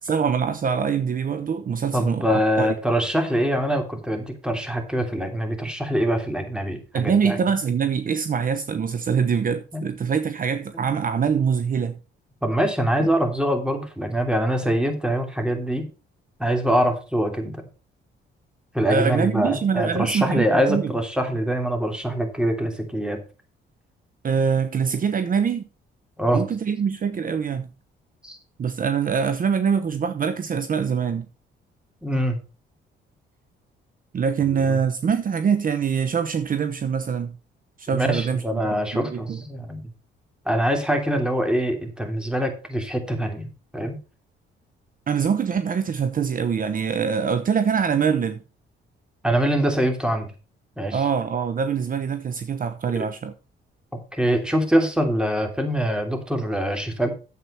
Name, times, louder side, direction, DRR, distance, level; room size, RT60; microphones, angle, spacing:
voice 1, 0.0-2.7 6.9-12.0 18.9-20.9 24.2-25.7 26.3-27.7 28.6-31.3 34.1-37.4 37.8-39.4 45.1-48.4 50.9-53.3, right 6 dB, 45° right, 0.9 m, -24 dB
voice 2, 1.9-7.4 9.7-9.9 12.4-15.9 16.4-17.6 18.7-23.2 26.2-26.4 28.2-28.4 32.0-32.4 34.4-34.8 37.9-39.8 40.4-43.5 43.7-44.0 49.2-50.3 50.8-51.0 54.1-57.1, equal, 5° right, 2.9 m, -24 dB
9.4 x 7.9 x 4.4 m
cardioid pair, 90°, 20 cm